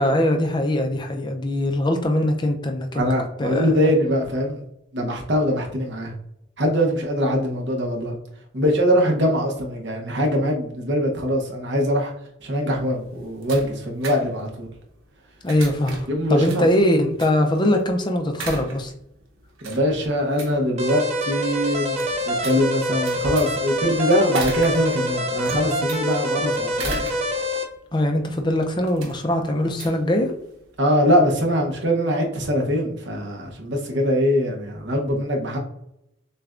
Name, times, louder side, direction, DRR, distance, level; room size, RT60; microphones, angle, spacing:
voice 1, 0.0-3.1 3.4-3.7 15.4-18.9 27.9-30.3, left 1 dB, 20° left, 4 dB, 0.4 m, -22 dB
voice 2, 2.9-4.6 4.9-6.1 6.6-8.2 8.5-12.1 12.4-14.7 16.1-16.7 19.6-27.0 30.8-35.6, equal, 60° right, 0 dB, 0.8 m, -22 dB
sound 1, 12.8-30.8, right 3 dB, 85° right, 1.0 m, -39 dB
sound 2, 20.8-27.6, equal, 30° right, 0.5 m, -25 dB
6.6 x 2.2 x 2.5 m, 0.80 s
head